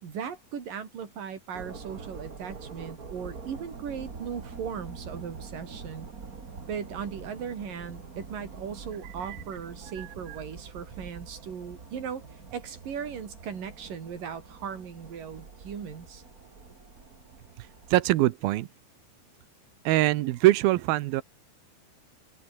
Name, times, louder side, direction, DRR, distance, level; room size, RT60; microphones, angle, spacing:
voice 1, 0.0-6.1 6.7-12.2 12.5-16.2, right 7 dB, 50° right, 4.8 m, -38 dB
sound 1, 1.5-18.2, right 5 dB, 35° right, 1.5 m, -45 dB
voice 2, 10.0-10.4 17.9-18.7 19.9-21.2, right 16 dB, 75° right, 2.3 m, -23 dB
open air
omnidirectional pair, 5.2 m